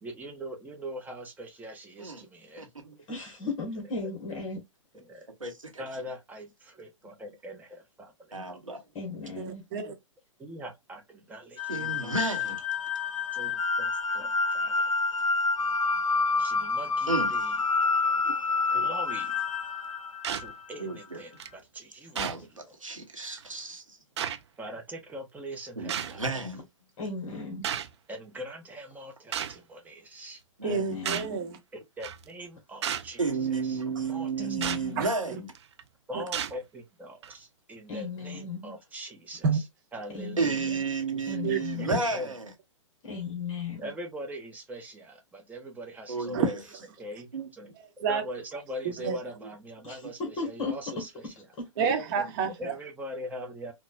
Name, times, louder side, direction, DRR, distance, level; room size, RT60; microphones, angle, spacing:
voice 1, 0.0-2.7 4.9-5.3 5.8-8.6 10.4-12.2 13.3-14.9 16.4-17.6 18.7-19.4 20.3-22.7 24.6-26.3 28.1-30.4 31.7-34.6 34.9-35.0 36.1-39.6 39.9-40.8 41.8-42.4 43.8-46.4 47.0-47.7 48.1-51.3 52.4-53.7, equal, 10° right, 0.9 m, -42 dB
voice 2, 2.6-2.9 5.4-5.8 8.3-8.8 11.7-12.6 17.1-17.3 18.3-18.4 20.8-21.2 22.1-24.0 25.8-26.6 30.6-30.9 33.2-35.5 40.4-42.5 46.1-46.6 47.3-47.5 50.0-50.1 52.2-52.3, right 4 dB, 90° right, 1.1 m, -32 dB
voice 3, 3.1-4.6 8.9-9.6 27.0-27.7 30.6-31.4 34.4-35.1 37.9-38.7 40.1-40.8 41.3-42.0 43.0-43.9 49.8-51.0 51.6-51.7, left 3 dB, 35° left, 1.4 m, -36 dB
voice 4, 9.4-9.9 30.6-31.6 35.0-35.4 36.1-36.2 39.4-39.6 41.4-41.6 41.9-42.0 46.3-46.5 47.8-48.2 49.0-49.2 51.8-52.7, right 6 dB, 40° right, 1.0 m, -29 dB
sound 1, 11.6-20.8, left 4 dB, 90° left, 0.4 m, -28 dB
sound 2, 20.2-20.5 21.4-21.5 22.1-22.4 23.4-23.5 24.2-24.4 25.9-26.2 27.6-27.9 29.3-29.6 31.0-31.3 32.0-32.2 32.8-33.1 34.6-34.8 35.5-35.8 36.3-36.6 37.2-37.3, right 9 dB, 60° right, 0.5 m, -32 dB
4.0 x 2.3 x 2.4 m
figure-of-eight pair, 115°, 16 cm